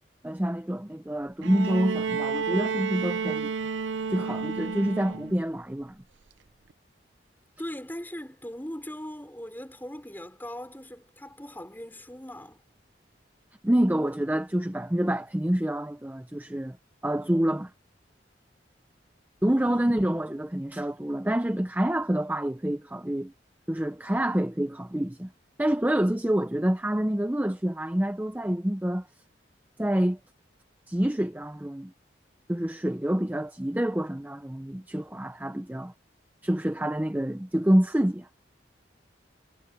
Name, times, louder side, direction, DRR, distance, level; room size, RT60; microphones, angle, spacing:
voice 1, 0.2-3.5 4.1-6.0 13.6-16.8 17.0-17.7 19.4-23.3 23.7-25.3 25.6-29.1 29.8-30.2 30.9-31.9 32.5-35.9 36.4-38.3, right 1 dB, 10° right, 0.5 m, -27 dB
Bowed string instrument, 1.4-5.4 6.7-6.8, right 5 dB, 90° right, 0.6 m, -31 dB
voice 2, 7.6-12.6 14.0-14.1 19.4-19.9, equal, 10° left, 5.6 m, -40 dB
head